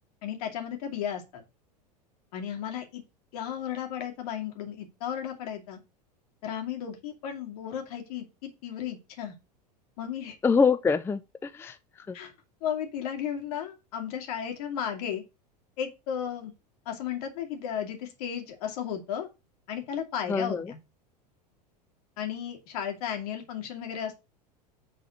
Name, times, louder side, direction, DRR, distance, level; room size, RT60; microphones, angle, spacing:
voice 1, 0.2-1.4 2.3-3.0 3.3-5.8 6.4-9.3 10.0-10.4 12.1-12.3 12.6-15.2 15.8-16.5 16.9-19.3 19.7-20.8 22.2-24.1, left 9 dB, 65° left, 2.5 m, -34 dB
voice 2, 10.4-12.2 20.3-20.7, left 5 dB, 10° left, 0.4 m, -25 dB
6.8 x 4.1 x 6.4 m
hypercardioid pair, 90°, 21 cm